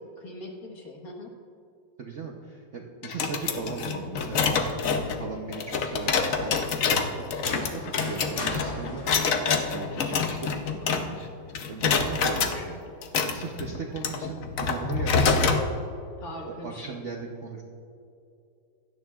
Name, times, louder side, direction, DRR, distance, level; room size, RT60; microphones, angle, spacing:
voice 1, 0.2-1.3 13.6-13.8 16.2-17.0, left 1 dB, 45° left, 0 dB, 1.6 m, -41 dB
voice 2, 2.0-4.7 5.2-9.1 9.7-12.8 13.2-15.7 16.4-17.6, right 4 dB, 90° right, 0 dB, 0.6 m, -38 dB
sound 1, 3.0-11.3 11.5-12.5 13.0-15.6, left 5 dB, 75° left, 0.7 m, -26 dB
sound 2, 7.3-10.1, left 1 dB, 90° left, 3.2 m, -38 dB
16.5 x 12.0 x 2.4 m, 2.6 s
omnidirectional pair, 2.4 m